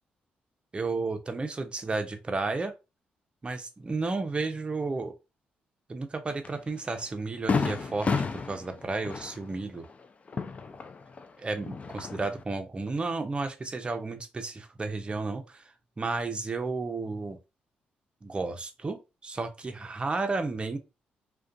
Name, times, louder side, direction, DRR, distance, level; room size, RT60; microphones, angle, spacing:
voice 1, 0.7-2.7 3.4-5.1 5.9-9.9 11.4-15.6 16.0-17.4 18.2-19.0 19.2-20.8, right 3 dB, 30° right, 0.5 m, -32 dB
Fireworks, 6.4-6.6 7.0-7.1 7.5-11.3 11.6-12.4, left 4 dB, 40° left, 0.3 m, -31 dB
2.4 x 2.2 x 2.5 m
cardioid pair, 65°, 4 cm